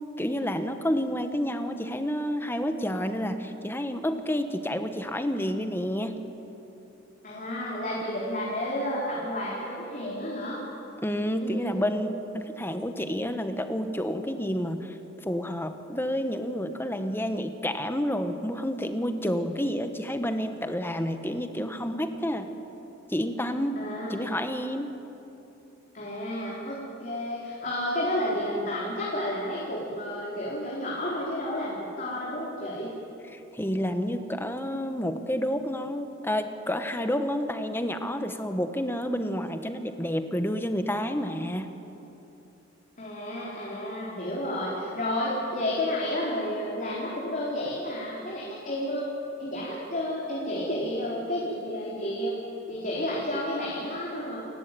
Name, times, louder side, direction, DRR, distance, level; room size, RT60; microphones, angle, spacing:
voice 1, 0.2-6.1 11.0-15.0 15.2-22.5 23.1-23.8 24.1-24.9 33.3-41.7, equal, 10° left, 8 dB, 1.3 m, -29 dB
voice 2, 7.2-10.6 11.4-12.1 23.8-24.3 25.9-32.9 43.0-49.1 49.4-52.3 52.7-54.4, left 1 dB, 45° left, -5 dB, 4.3 m, -31 dB
29.0 x 15.0 x 9.3 m, 2.9 s
head